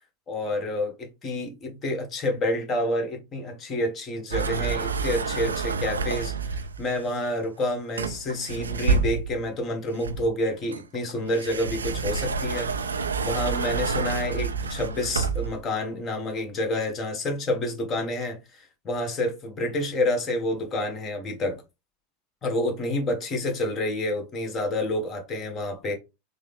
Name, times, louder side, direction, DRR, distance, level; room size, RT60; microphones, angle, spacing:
voice 1, 0.3-21.6 22.4-25.9, left 1 dB, 35° left, 1.4 m, -29 dB
sound 1, 4.3-6.9 8.0-9.5 10.0-15.6, right 4 dB, 90° right, 0.3 m, -28 dB
3.7 x 2.0 x 3.4 m
hypercardioid pair, 85°, 0 cm